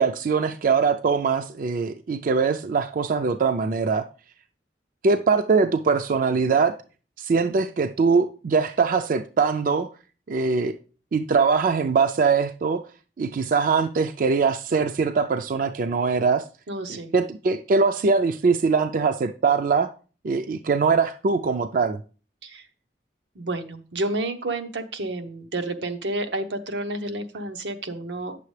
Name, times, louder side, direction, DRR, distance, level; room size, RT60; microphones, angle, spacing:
voice 1, 0.0-4.0 5.0-6.7 7.2-9.9 10.3-10.8 11.1-12.8 13.2-16.4 16.9-19.9 20.2-22.0, right 5 dB, 50° right, 0.4 m, -22 dB
voice 2, 16.7-17.1 22.4-22.7 23.4-28.4, right 2 dB, 90° right, 0.9 m, -30 dB
9.0 x 6.8 x 3.2 m
head